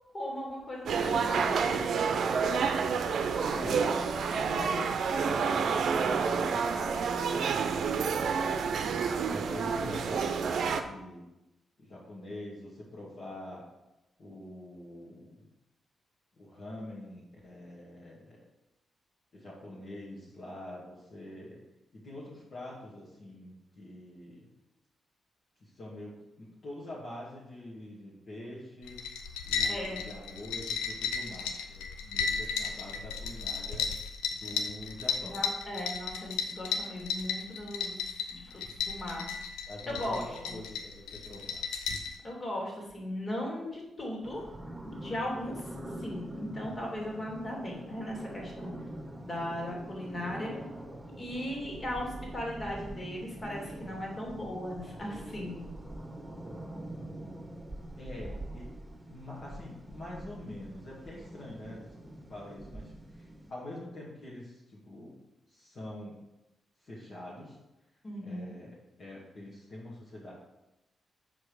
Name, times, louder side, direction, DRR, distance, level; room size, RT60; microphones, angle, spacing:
voice 1, 0.1-1.8 29.6-30.0 35.2-38.0 38.3-39.3 39.9-40.6 42.2-44.4 44.8-45.7 46.0-48.7 49.2-50.5 51.2-55.6 68.0-68.5, left 1 dB, 40° left, -1 dB, 2.7 m, -37 dB
sound 1, 0.9-10.8, right 5 dB, 65° right, 0.6 m, -29 dB
voice 2, 3.5-4.0 4.4-8.0 9.2-11.2 11.8-13.6 14.2-15.4 16.4-18.4 19.3-21.6 21.9-24.5 25.6-29.0 29.4-33.9 34.3-35.4 39.7-41.7 58.0-58.7 59.1-61.9 62.3-65.2 65.5-66.2 66.8-67.6 68.2-70.3, left 1 dB, 60° left, -7 dB, 2.0 m, -45 dB
sound 2, 28.8-42.2, left 6 dB, 85° left, 0.6 m, -35 dB
sound 3, 44.2-63.5, right 1 dB, 15° right, 1.6 m, -44 dB
7.0 x 5.0 x 4.9 m, 0.95 s
hypercardioid pair, 45°, 0 cm